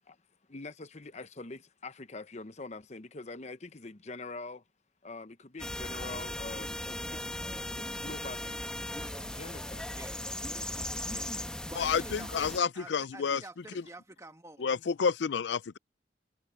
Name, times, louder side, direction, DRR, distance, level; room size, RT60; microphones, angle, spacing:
voice 1, 0.5-4.6 5.0-8.6 9.2-9.9, left 3 dB, 40° left, 0.9 m, -44 dB
sound 1, 5.6-12.6, left 1 dB, 5° left, 1.2 m, -38 dB
voice 2, 6.5-7.9 8.4-8.5 8.9-9.5 9.9-10.7 11.1-11.3 11.7-14.7, right 1 dB, 15° right, 1.5 m, -50 dB
voice 3, 11.8-13.4 14.6-15.8, left 6 dB, 75° left, 0.4 m, -29 dB
head